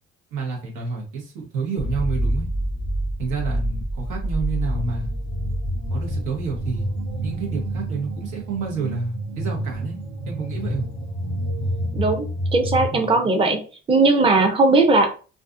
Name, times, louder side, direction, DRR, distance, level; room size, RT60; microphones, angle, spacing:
voice 1, 0.3-2.5 3.2-5.1 5.9-6.9 7.2-10.0 10.3-10.9 12.9-13.1, right 4 dB, 85° right, -1 dB, 1.1 m, -29 dB
sound 1, 1.8-12.9, right 1 dB, 65° right, 0.9 m, -27 dB
voice 2, 11.9-13.6 13.9-15.1, right 3 dB, 20° right, 4 dB, 0.5 m, -18 dB
2.5 x 2.4 x 2.4 m, 0.36 s
cardioid pair, 90°, 30 cm